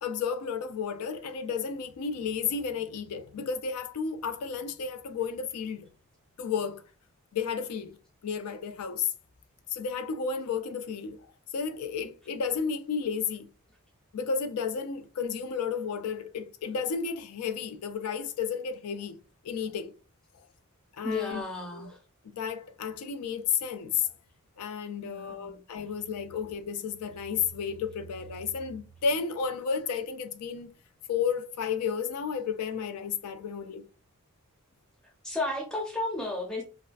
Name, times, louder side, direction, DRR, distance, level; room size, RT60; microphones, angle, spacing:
voice 1, 0.0-5.9 6.4-6.8 7.3-7.9 8.2-9.1 9.7-13.5 14.1-19.2 19.4-19.9 21.0-21.4 21.7-21.9 22.2-24.1 24.6-30.7 31.1-33.8, left 6 dB, 90° left, 0.4 m, -32 dB
voice 2, 21.0-22.0 25.0-25.6 35.2-36.6, left 1 dB, 5° left, 0.6 m, -33 dB
2.3 x 2.2 x 2.4 m
head